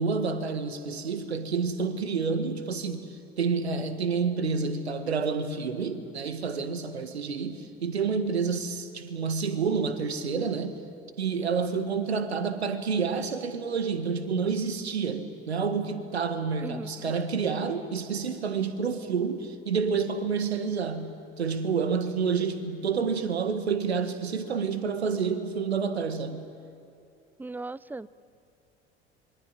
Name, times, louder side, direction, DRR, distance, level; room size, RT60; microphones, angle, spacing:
voice 1, 0.0-3.1 3.4-10.8 11.2-21.1 21.4-26.4, right 5 dB, 85° right, 1.7 m, -29 dB
voice 2, 16.6-17.1 27.4-28.1, right 3 dB, 5° right, 0.6 m, -38 dB
27.0 x 23.5 x 9.0 m
figure-of-eight pair, 70°, 31 cm